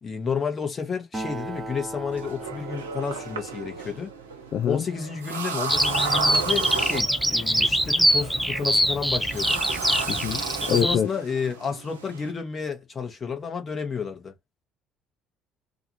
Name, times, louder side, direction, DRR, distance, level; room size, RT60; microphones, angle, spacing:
voice 1, 0.0-4.1 4.6-9.6 10.6-14.3, left 6 dB, 35° left, 1.1 m, -31 dB
Acoustic guitar, 1.1-4.9, right 2 dB, 25° right, 0.9 m, -39 dB
sound 1, 2.1-12.3, right 5 dB, 80° right, 0.4 m, -34 dB
voice 2, 4.5-4.8 10.1-11.1, left 9 dB, 50° left, 0.4 m, -25 dB
Bird vocalization bird call bird song, 5.7-11.0, equal, ahead, 0.5 m, -23 dB
2.5 x 2.4 x 2.8 m
figure-of-eight pair, 55°, 0 cm